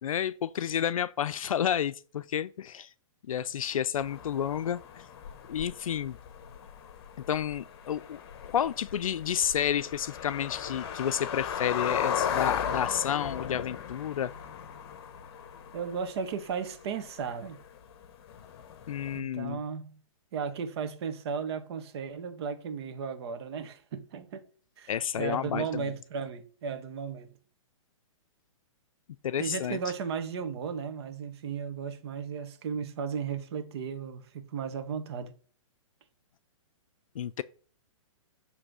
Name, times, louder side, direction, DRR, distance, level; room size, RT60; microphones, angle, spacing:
voice 1, 0.0-2.9 3.3-5.0 5.5-6.2 7.3-14.3 18.9-19.6 24.9-25.9 29.2-29.8 37.2-37.4, left 9 dB, 90° left, 0.4 m, -30 dB
sound 1, 4.0-19.2, left 8 dB, 50° left, 1.1 m, -37 dB
voice 2, 15.7-17.6 19.1-20.0 20.3-24.4 24.8-24.9 25.2-27.3 29.4-35.3, right 6 dB, 50° right, 1.3 m, -35 dB
7.8 x 3.3 x 6.2 m
hypercardioid pair, 150°, 17 cm